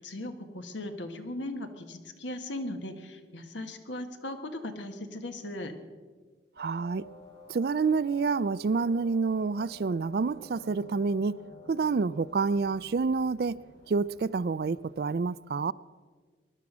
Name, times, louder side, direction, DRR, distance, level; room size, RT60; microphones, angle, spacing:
voice 1, 0.0-5.7, left 1 dB, 90° left, 1.5 m, -38 dB
sound 1, 6.6-15.0, left 3 dB, 65° left, 3.8 m, -52 dB
voice 2, 6.6-7.1 7.5-11.4 11.7-13.6 13.9-15.7, right 4 dB, 55° right, 0.4 m, -28 dB
20.0 x 11.5 x 6.1 m
head